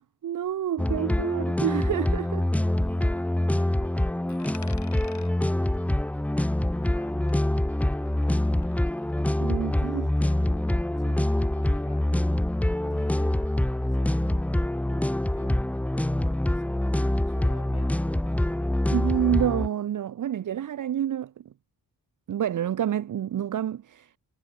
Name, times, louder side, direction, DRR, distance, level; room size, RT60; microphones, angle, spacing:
voice 1, 0.0-2.4 9.4-10.1 18.8-21.3 22.3-24.1, right 10 dB, 55° right, 0.6 m, -28 dB
sound 1, 0.8-19.7, left 1 dB, 5° left, 0.4 m, -25 dB
voice 2, 2.8-4.6 5.3-6.0 6.8-7.6 8.2-8.8 9.7-12.2 12.6-15.8 16.5-18.8, left 8 dB, 85° left, 6.0 m, -53 dB
Coin (dropping), 4.3-7.0 7.3-9.3, left 5 dB, 50° left, 4.9 m, -51 dB
wide cardioid pair, 120°, 37 cm